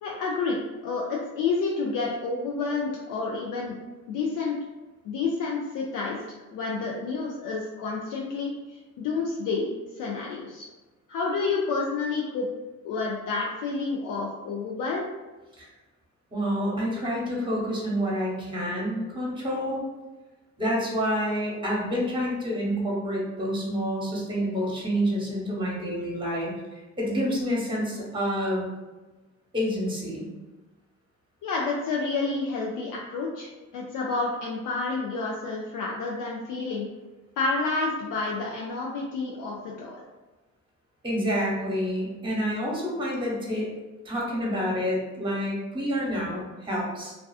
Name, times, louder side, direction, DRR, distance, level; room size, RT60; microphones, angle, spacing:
voice 1, 0.0-3.8 4.1-4.5 5.0-10.7 11.1-12.5 12.8-15.1 31.4-36.9 37.4-40.0, left 4 dB, 85° left, -3 dB, 0.5 m, -29 dB
voice 2, 16.3-19.8 20.6-28.7 29.5-30.3 41.0-43.7 44.0-47.2, equal, 15° right, -4 dB, 0.9 m, -28 dB
2.4 x 2.4 x 2.3 m, 1.2 s
cardioid pair, 90°, 30 cm